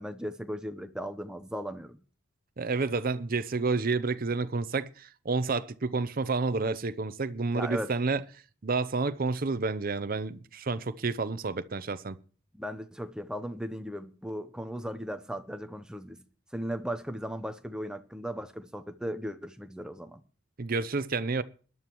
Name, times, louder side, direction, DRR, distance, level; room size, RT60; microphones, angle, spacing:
voice 1, 0.0-2.0 7.5-7.9 12.5-16.2 16.5-20.2, equal, 5° right, 0.7 m, -37 dB
voice 2, 2.6-8.2 8.6-12.2 20.6-21.4, right 4 dB, 45° right, 0.6 m, -30 dB
21.0 x 11.0 x 3.0 m
head